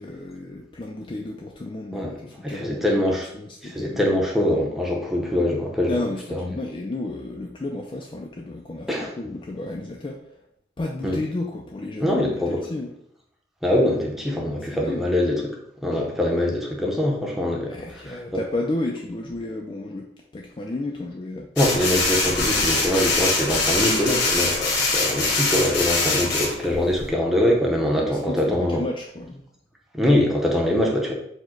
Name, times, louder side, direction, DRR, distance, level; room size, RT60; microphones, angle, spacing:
voice 1, 0.0-3.1 3.3-4.0 5.9-10.2 10.8-12.9 14.6-15.1 17.7-20.1 20.3-21.5 28.0-29.5, left 2 dB, 30° left, 0 dB, 0.3 m, -32 dB
voice 2, 2.4-3.3 3.7-6.0 6.3-6.6 8.9-9.1 11.0-11.2 12.0-12.6 13.6-15.4 15.8-17.8 21.6-28.8 29.9-31.1, left 1 dB, ahead, -2 dB, 0.7 m, -23 dB
sound 1, 21.6-27.1, left 3 dB, 85° left, 1.3 m, -23 dB
4.5 x 2.2 x 4.4 m, 0.73 s
head